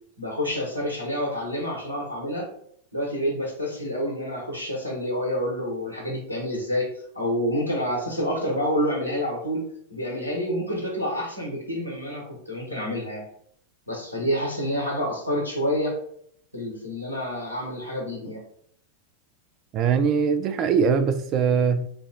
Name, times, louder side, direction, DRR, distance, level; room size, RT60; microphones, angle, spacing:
voice 1, 0.2-2.5 2.9-6.9 7.1-13.2 13.9-16.0 16.5-18.4, equal, 90° right, 1.1 m, -28 dB
voice 2, 19.7-21.9, right 6 dB, 35° right, 0.4 m, -22 dB
3.3 x 2.3 x 4.0 m
figure-of-eight pair, 90°, 0 cm